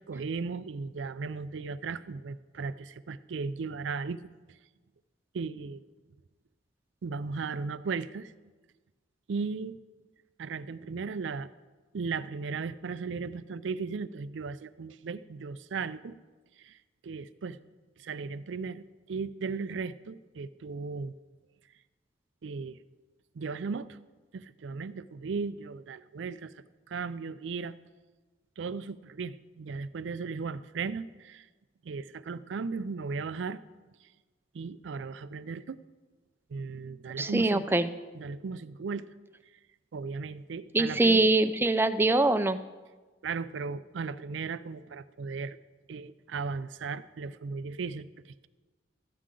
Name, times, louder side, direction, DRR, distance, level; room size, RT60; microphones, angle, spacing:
voice 1, 0.1-4.2 5.3-5.8 7.0-8.3 9.3-9.8 10.4-11.5 11.9-16.2 16.6-16.8 17.0-17.6 18.0-21.1 22.4-22.8 23.3-24.0 24.3-26.5 26.9-27.8 28.6-31.5 31.8-33.6 34.5-35.8 36.5-37.7 38.1-39.1 39.9-41.2 43.2-45.6 45.9-48.5, right 4 dB, 85° right, 15 dB, 0.4 m, -36 dB
voice 2, 37.2-37.9 40.7-42.6, right 2 dB, 10° right, 10 dB, 0.4 m, -23 dB
13.5 x 9.7 x 3.8 m, 1.3 s
head